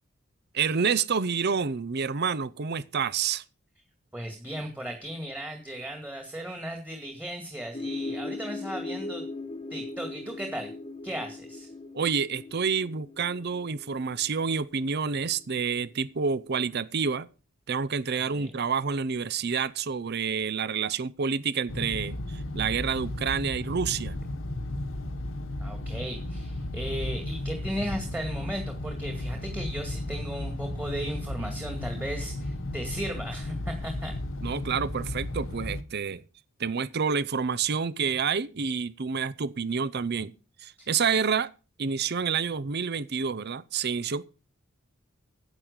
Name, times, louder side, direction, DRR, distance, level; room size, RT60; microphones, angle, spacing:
voice 1, 0.5-3.4 11.9-17.3 17.7-24.2 34.4-36.2 36.6-40.3 40.6-41.5 41.8-44.2, right 6 dB, 55° right, 0.6 m, -28 dB
voice 2, 4.1-9.3 9.7-10.7 11.0-11.7 18.1-18.5 25.6-34.1 40.8-40.9, equal, 10° right, 2.1 m, -36 dB
sound 1, 7.7-15.4, left 2 dB, 25° left, 1.1 m, -39 dB
sound 2, 21.7-35.8, left 1 dB, 70° left, 1.2 m, -34 dB
10.5 x 8.8 x 6.6 m
head